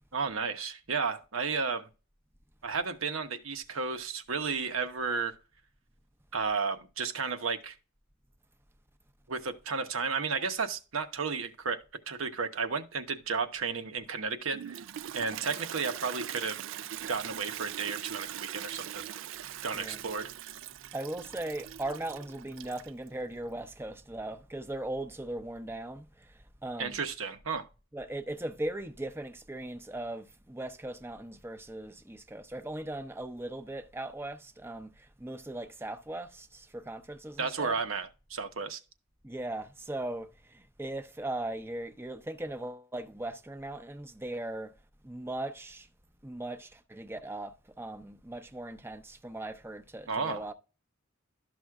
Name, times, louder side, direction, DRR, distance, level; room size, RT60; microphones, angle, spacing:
voice 1, 0.1-1.9 2.6-5.4 6.3-7.8 9.3-14.8 15.1-16.6 17.1-19.0 19.6-20.3 26.8-27.7 37.4-38.8 50.1-50.5, right 5 dB, 85° right, 1.0 m, -33 dB
Toilet flush, 14.5-23.1, right 11 dB, 65° right, 0.3 m, -41 dB
voice 2, 20.9-26.3 26.6-27.0 27.9-37.7 39.2-44.7 45.0-45.9 46.2-50.5, right 1 dB, 10° right, 0.7 m, -39 dB
12.5 x 6.2 x 2.4 m
head